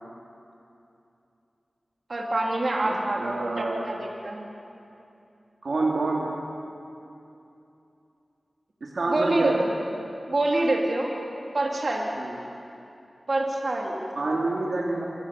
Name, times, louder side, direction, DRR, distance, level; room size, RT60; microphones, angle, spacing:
voice 1, 2.1-4.5 9.1-9.6 10.3-11.1 11.5-12.1 13.3-14.1, right 2 dB, 55° right, -1 dB, 3.6 m, -26 dB
voice 2, 2.8-3.9 5.6-6.3 8.8-9.6 12.2-12.4 14.2-15.1, right 2 dB, 85° right, -3 dB, 2.7 m, -27 dB
26.5 x 17.5 x 7.2 m, 2.8 s
wide cardioid pair, 75°, 0 cm